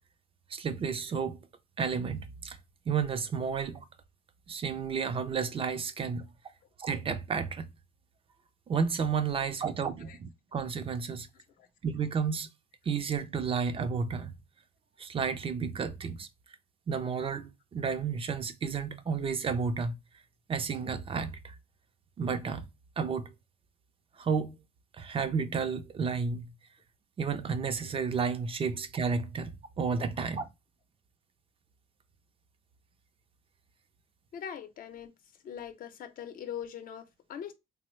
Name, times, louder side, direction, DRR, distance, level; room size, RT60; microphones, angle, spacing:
voice 1, 0.5-1.4 1.8-2.6 2.9-3.8 4.5-6.3 6.8-7.7 8.7-11.3 11.8-12.5 12.9-14.3 15.0-16.3 16.9-19.9 20.5-21.6 22.2-22.7 23.0-23.3 24.2-24.6 25.0-26.5 27.2-30.5, right 5 dB, 35° right, 0.5 m, -32 dB
voice 2, 34.3-35.1 35.4-37.5, left 8 dB, 55° left, 0.7 m, -41 dB
3.4 x 2.0 x 3.0 m
cardioid pair, 110°, 17 cm